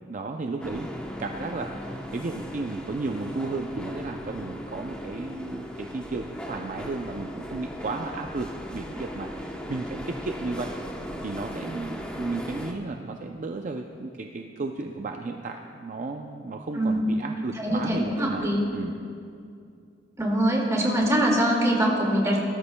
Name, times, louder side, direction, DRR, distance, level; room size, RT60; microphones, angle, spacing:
voice 1, 0.1-0.9 1.2-10.7 11.2-18.9, right 3 dB, 45° right, 4 dB, 0.5 m, -34 dB
sound 1, 0.6-12.7, equal, 5° left, 0.8 m, -37 dB
voice 2, 17.3-18.6 20.2-22.4, right 1 dB, 15° right, -2 dB, 2.0 m, -23 dB
19.0 x 13.0 x 2.2 m, 2.5 s
head